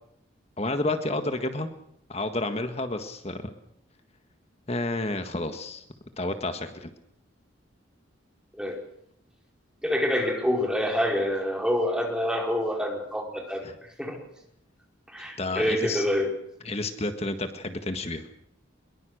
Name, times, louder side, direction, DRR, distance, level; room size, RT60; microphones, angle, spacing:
voice 1, 0.6-1.7 2.1-3.4 4.7-5.8 6.2-6.9 13.6-13.7 15.4-16.0 16.6-18.3, left 2 dB, 30° left, 8 dB, 1.6 m, -30 dB
voice 2, 9.8-13.6 14.0-14.2 15.1-16.3, equal, 5° right, 1 dB, 4.5 m, -26 dB
23.5 x 22.5 x 6.5 m, 0.74 s
head